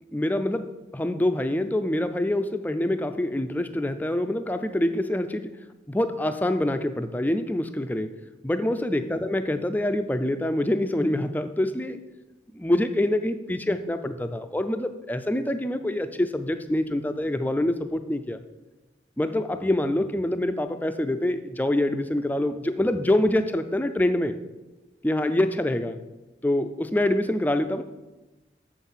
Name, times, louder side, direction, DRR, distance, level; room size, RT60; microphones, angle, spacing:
voice 1, 0.1-5.5 5.9-8.1 8.4-12.0 12.6-18.4 19.2-24.4 25.0-26.0 26.4-27.8, left 1 dB, 10° left, 9 dB, 0.4 m, -25 dB
6.6 x 5.6 x 7.2 m, 1.1 s
head